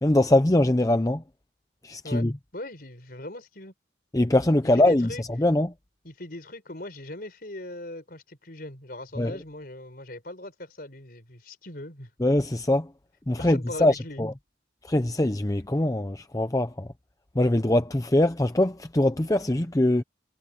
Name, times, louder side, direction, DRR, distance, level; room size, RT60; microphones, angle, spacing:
voice 1, 0.0-1.2 1.8-2.3 4.1-5.7 9.2-9.4 12.2-12.9 13.3-14.3 14.8-16.9 17.3-20.0, left 1 dB, 20° left, 0.7 m, -23 dB
voice 2, 2.5-3.7 4.7-5.2 6.0-12.1 13.4-14.2, left 1 dB, 50° left, 4.8 m, -39 dB
head